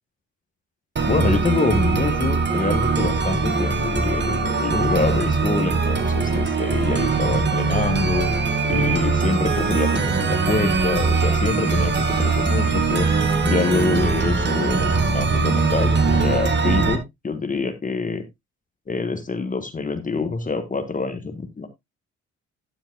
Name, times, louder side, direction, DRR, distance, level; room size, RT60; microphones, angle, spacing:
voice 1, 1.0-8.3 8.7-13.1 13.4-18.2 18.9-21.7, left 4 dB, 25° left, 8 dB, 1.5 m, -26 dB
sound 1, 1.0-17.0, right 4 dB, 35° right, 2.0 m, -21 dB
12.5 x 8.9 x 2.2 m, 0.19 s
cardioid pair, 90°, 30 cm